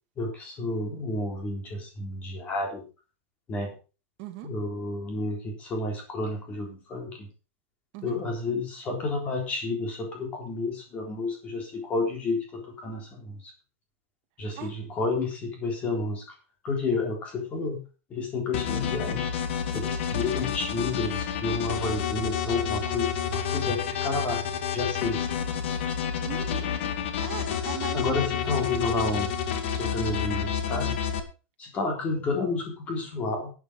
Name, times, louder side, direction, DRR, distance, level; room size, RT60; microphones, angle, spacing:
voice 1, 0.2-2.9 3.5-3.7 4.4-7.3 8.0-13.5 14.4-16.4 16.6-17.8 18.1-19.3 19.7-24.4 24.7-25.2 27.9-29.3 29.7-31.0 31.6-33.5, left 3 dB, 20° left, 3 dB, 3.7 m, -30 dB
voice 2, 4.2-4.5 7.9-8.2 14.6-14.7 19.7-20.0 26.2-26.7 27.2-28.4, right 12 dB, 35° right, 5 dB, 2.1 m, -39 dB
sound 1, 18.5-31.2, left 8 dB, 60° left, 2.1 m, -29 dB
12.0 x 8.5 x 5.3 m, 0.34 s
supercardioid pair, 175°, 7 cm